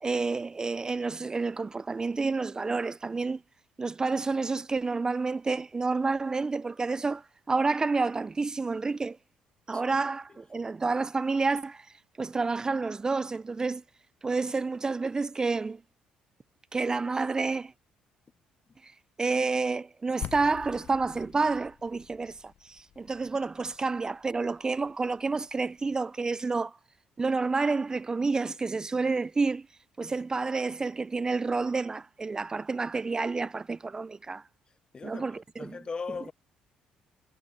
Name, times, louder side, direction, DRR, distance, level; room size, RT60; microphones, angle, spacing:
voice 1, 0.0-3.4 3.8-9.2 9.7-13.8 14.2-15.8 16.7-17.7 18.8-26.8 27.2-29.7 30.0-34.5 35.0-35.8, right 4 dB, 25° right, 0.4 m, -29 dB
sound 1, 20.2-26.0, left 11 dB, 65° left, 0.6 m, -46 dB
voice 2, 34.9-35.3 35.6-36.3, left 4 dB, 35° left, 0.7 m, -37 dB
supercardioid pair, 75°, 3 cm